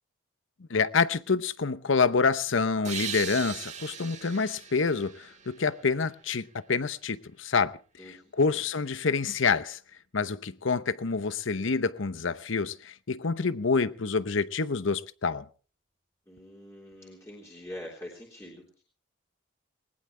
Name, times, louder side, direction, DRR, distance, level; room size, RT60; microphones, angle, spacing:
voice 1, 0.7-7.8 8.1-9.8 10.1-15.5, left 4 dB, 70° left, 0.8 m, -27 dB
sound 1, 2.8-6.3, right 8 dB, 35° right, 1.7 m, -39 dB
voice 2, 8.0-8.6 16.3-18.8, left 1 dB, 15° left, 3.5 m, -45 dB
20.0 x 19.5 x 3.3 m
head